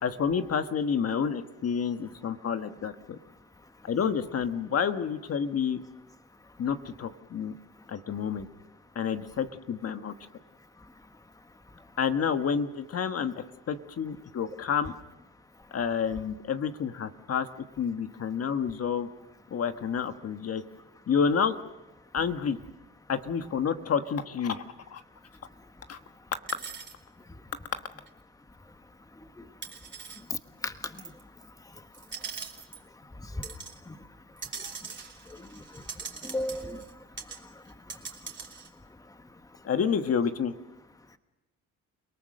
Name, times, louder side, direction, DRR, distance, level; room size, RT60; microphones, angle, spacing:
voice 1, 0.0-3.2 3.8-5.8 6.6-7.5 7.9-8.5 8.9-10.1 12.0-13.3 13.7-14.9 15.7-17.5 17.8-19.1 19.5-20.6 21.1-21.6 22.1-22.6 23.1-24.6 24.9-25.0 25.9-26.0 39.6-40.5, left 7 dB, 55° left, 8 dB, 1.3 m, -29 dB
sound 1, 26.5-26.9 28.1-28.2 29.6-30.2 31.0-31.2 31.9-32.8 33.4-33.8 34.4-36.9 37.2-37.4 37.7-38.7, right 5 dB, 40° right, 3.1 m, -41 dB
voice 2, 36.2-36.8, left 1 dB, 10° left, 9 dB, 1.2 m, -34 dB
29.5 x 18.5 x 6.5 m, 1.1 s
cardioid pair, 90°, 30 cm